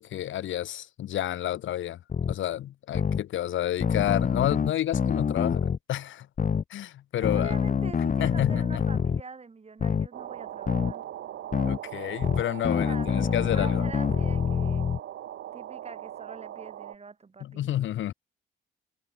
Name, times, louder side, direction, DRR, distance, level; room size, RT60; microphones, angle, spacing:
voice 1, 0.0-6.3 6.7-7.6 8.2-8.8 11.7-13.8 17.4-18.1, left 12 dB, 75° left, 3.0 m, -30 dB
sound 1, 2.1-2.3 2.9-3.2 3.8-5.8 6.4-6.6 7.2-9.2 9.8-10.1 10.7-10.9 11.5-11.8 12.2-15.0, left 6 dB, 40° left, 1.9 m, -26 dB
voice 2, 7.2-11.0 12.8-13.1 13.5-14.9 15.5-17.8, right 4 dB, 30° right, 6.6 m, -44 dB
sound 2, 10.1-17.0, right 12 dB, 75° right, 3.0 m, -40 dB
cardioid pair, 90°, 20 cm